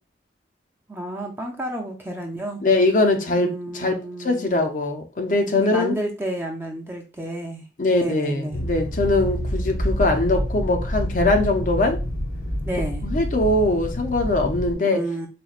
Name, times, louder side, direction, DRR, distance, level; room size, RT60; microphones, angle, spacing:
voice 1, 0.9-2.6 3.4-4.6 5.5-7.6 7.9-8.6 12.6-13.0 14.8-15.3, right 1 dB, 10° right, 0.5 m, -31 dB
voice 2, 2.6-4.0 4.2-5.9 7.8-12.0 13.0-15.0, left 2 dB, 45° left, 0.5 m, -21 dB
sound 1, 8.5-14.7, equal, 90° left, 1.4 m, -27 dB
4.2 x 2.2 x 2.4 m
head